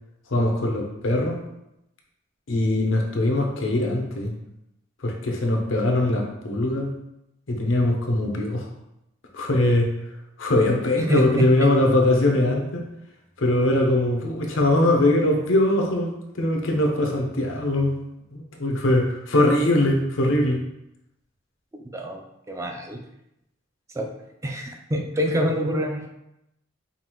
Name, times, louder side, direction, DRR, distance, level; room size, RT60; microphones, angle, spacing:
voice 1, 0.3-1.4 2.5-4.3 5.0-6.9 7.5-8.7 9.3-9.9 10.4-12.8 13.4-17.9 18.3-20.6, left 1 dB, 90° left, 1 dB, 0.7 m, -21 dB
voice 2, 11.0-11.7 21.9-23.0 24.0-24.1 24.4-26.1, equal, 15° right, 2 dB, 0.3 m, -26 dB
5.2 x 2.4 x 3.0 m, 0.85 s
head